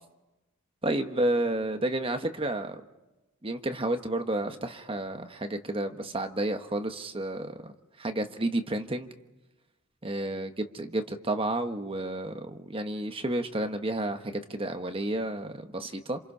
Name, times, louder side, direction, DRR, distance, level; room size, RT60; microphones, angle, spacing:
voice 1, 0.8-2.8 3.4-7.7 8.0-9.1 10.0-16.2, right 1 dB, 25° right, 6 dB, 1.2 m, -31 dB
28.0 x 27.5 x 5.6 m, 1.0 s
head